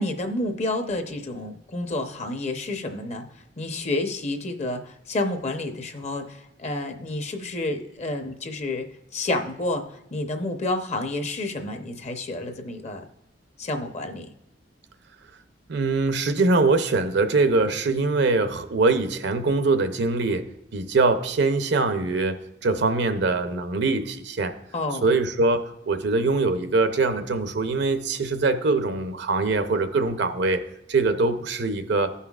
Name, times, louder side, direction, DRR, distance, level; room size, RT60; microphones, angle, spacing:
voice 1, 0.0-3.3 3.6-8.9 9.1-13.0 13.6-14.3 24.7-25.1, left 2 dB, 40° left, 6 dB, 0.7 m, -29 dB
voice 2, 15.7-20.5 20.7-22.4 22.6-24.5 25.0-30.6 30.9-32.1, right 3 dB, 65° right, 8 dB, 0.6 m, -23 dB
16.0 x 5.6 x 2.4 m, 0.82 s
head